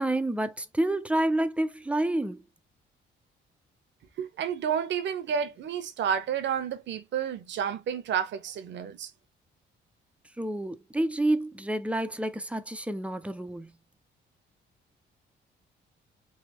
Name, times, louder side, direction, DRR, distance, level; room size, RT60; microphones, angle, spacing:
voice 1, 0.0-2.4 10.4-13.7, right 1 dB, 5° right, 0.4 m, -28 dB
voice 2, 4.2-9.1, right 8 dB, 65° right, 0.7 m, -30 dB
3.2 x 2.2 x 2.9 m
cardioid pair, 90°, 20 cm